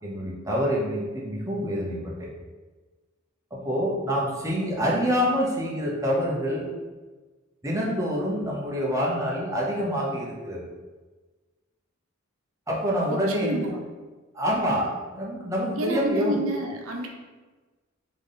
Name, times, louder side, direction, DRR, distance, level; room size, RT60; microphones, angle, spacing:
voice 1, 0.0-2.3 3.5-6.7 7.6-10.7 12.7-13.7 14.3-16.4, equal, 15° right, -4 dB, 0.7 m, -26 dB
voice 2, 13.1-13.8 15.8-17.1, right 1 dB, 70° right, 1 dB, 0.7 m, -29 dB
3.6 x 3.6 x 3.9 m, 1.3 s
head